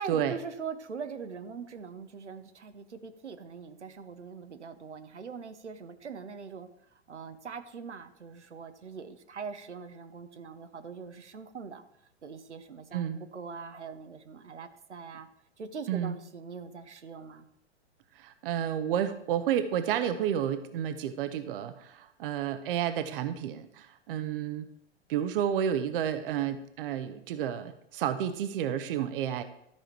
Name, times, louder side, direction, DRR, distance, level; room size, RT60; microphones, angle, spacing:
voice 1, 0.0-11.8 12.2-15.3 15.6-17.5, right 5 dB, 85° right, 9 dB, 1.0 m, -42 dB
voice 2, 18.2-24.7 25.1-29.4, right 9 dB, 50° right, 10 dB, 0.8 m, -31 dB
13.0 x 5.1 x 4.4 m, 0.78 s
figure-of-eight pair, 105°, 34 cm